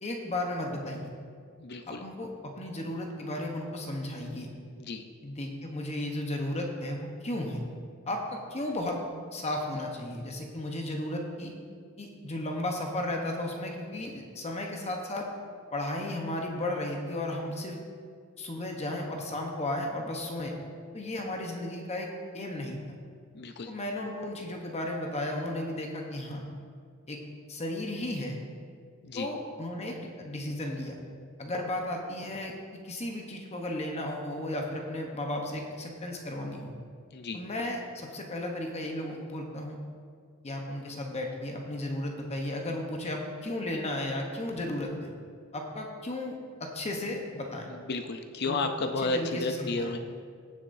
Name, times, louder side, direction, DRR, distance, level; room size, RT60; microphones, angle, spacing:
voice 1, 0.0-1.1 1.9-4.5 5.2-7.6 8.1-9.0 9.3-11.5 12.0-15.3 15.7-17.8 18.4-20.6 20.9-22.8 23.7-26.4 27.1-27.2 27.5-28.3 29.1-31.0 31.4-32.5 32.8-36.7 37.3-39.8 40.4-45.1 45.5-47.7 48.4-48.7 49.0-49.9, left 1 dB, 30° left, 1 dB, 0.9 m, -34 dB
voice 2, 1.6-2.0 4.9-5.0 23.3-23.7 29.0-29.3 37.1-37.4 47.9-50.0, left 3 dB, 50° left, 7 dB, 0.6 m, -32 dB
17.0 x 7.2 x 2.6 m, 2.1 s
head